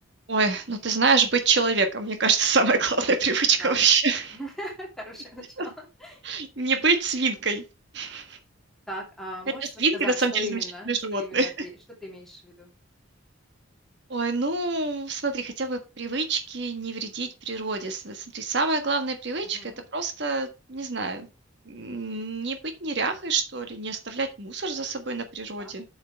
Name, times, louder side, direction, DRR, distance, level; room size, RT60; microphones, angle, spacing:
voice 1, 0.3-4.4 5.6-5.7 6.2-7.6 7.9-8.4 9.8-10.6 10.9-11.7 14.1-21.3 21.6-25.8, right 4 dB, 55° right, 7 dB, 1.5 m, -26 dB
voice 2, 4.3-6.2 8.9-11.7 12.0-12.7 19.4-19.8 25.6-25.7, left 1 dB, ahead, -3 dB, 2.8 m, -38 dB
7.6 x 6.4 x 4.6 m, 0.27 s
head